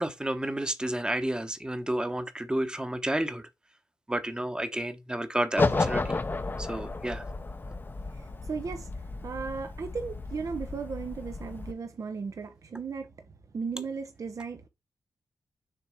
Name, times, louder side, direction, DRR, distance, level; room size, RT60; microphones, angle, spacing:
voice 1, 0.0-3.5 4.1-6.2 6.6-7.2, right 1 dB, 15° right, 1.1 m, -31 dB
sound 1, 5.6-11.7, left 3 dB, 35° left, 0.8 m, -32 dB
voice 2, 8.2-8.9 9.2-13.1 13.5-14.7, right 5 dB, 60° right, 0.9 m, -36 dB
7.1 x 2.9 x 4.8 m
cardioid pair, 60°, 6 cm